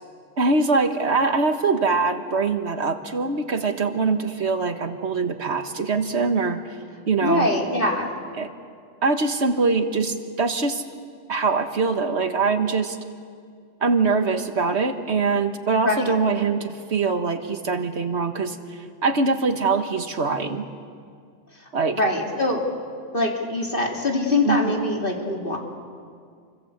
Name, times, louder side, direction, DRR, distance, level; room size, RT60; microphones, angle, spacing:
voice 1, 0.4-6.6 7.1-7.5 8.4-8.5 9.0-10.8 11.3-13.0 13.8-18.6 19.0-20.7 21.7-22.0 24.5-24.8, right 4 dB, 60° right, 6 dB, 1.9 m, -23 dB
voice 2, 7.2-8.1 15.8-16.2 21.9-22.6 23.1-25.6, left 2 dB, 45° left, 0 dB, 3.4 m, -23 dB
28.5 x 25.0 x 8.2 m, 2.2 s
omnidirectional pair, 1.3 m